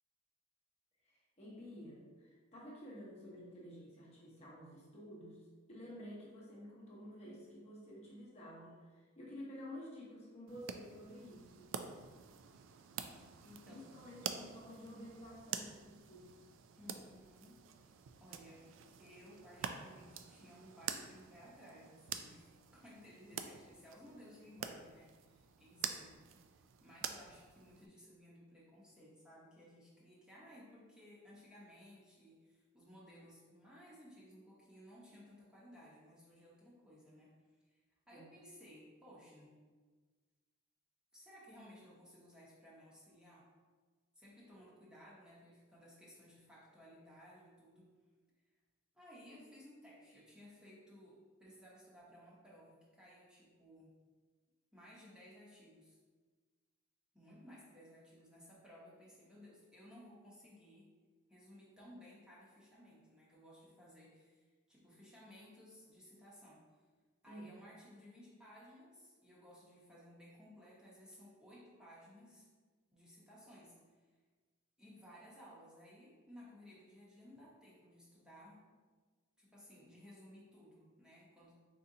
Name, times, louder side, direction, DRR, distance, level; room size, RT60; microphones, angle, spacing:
voice 1, 1.1-5.4 5.7-11.7 13.7-16.3 38.1-38.3 67.3-67.5, equal, 30° left, -5 dB, 0.9 m, -51 dB
sound 1, 10.5-27.9, right 8 dB, 65° right, 0.3 m, -48 dB
voice 2, 13.4-13.8 16.8-17.9 18.2-18.7 19.0-26.2 26.5-37.3 37.6-39.5 41.1-43.5 44.1-47.9 48.9-53.9 54.7-56.0 57.1-60.9 61.3-66.8 67.2-72.5 72.9-73.7 74.0-74.1 74.8-78.6 79.4-81.6, equal, 5° right, -7 dB, 0.9 m, -58 dB
4.2 x 3.8 x 2.7 m, 1.4 s
head